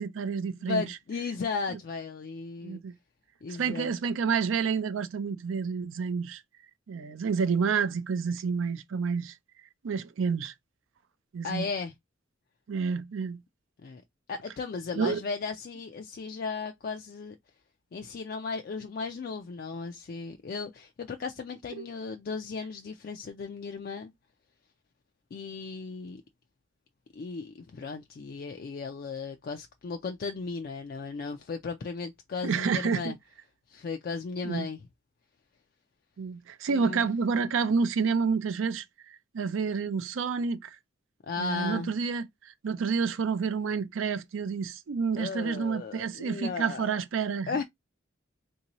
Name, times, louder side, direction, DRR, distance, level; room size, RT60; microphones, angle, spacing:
voice 1, 0.0-0.8 2.6-2.9 3.5-6.4 6.9-9.3 9.8-10.5 11.3-11.7 12.7-13.4 14.9-15.2 21.8-21.9 32.4-33.1 34.4-34.7 36.2-40.8 41.4-47.6, right 5 dB, 80° right, 0.4 m, -29 dB
voice 2, 0.6-2.8 3.4-3.9 11.4-11.9 13.8-14.0 14.3-17.4 17.9-24.1 25.3-26.2 27.1-33.2 33.7-34.8 36.7-37.1 41.2-41.9 45.1-47.0 47.5-47.6, left 4 dB, 50° left, 0.3 m, -35 dB
3.6 x 2.7 x 2.9 m
head